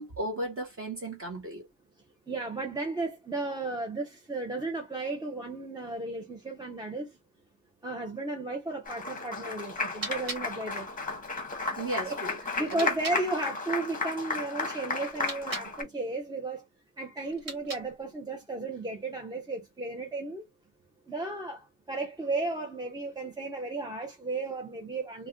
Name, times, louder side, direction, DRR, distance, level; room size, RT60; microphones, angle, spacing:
voice 1, 0.0-1.6 11.8-12.4 12.7-12.9, right 1 dB, 30° right, 1.0 m, -35 dB
voice 2, 2.3-7.1 7.8-10.9 12.0-12.1 12.6-16.6 17.0-20.4 21.1-25.3, right 2 dB, 10° right, 0.5 m, -34 dB
Applause, 8.9-15.8, left 3 dB, 20° left, 0.8 m, -34 dB
sound 1, 9.9-13.2 15.1-15.7 17.3-18.1, right 3 dB, 50° right, 1.1 m, -42 dB
2.4 x 2.1 x 3.6 m
cardioid pair, 135°, 43 cm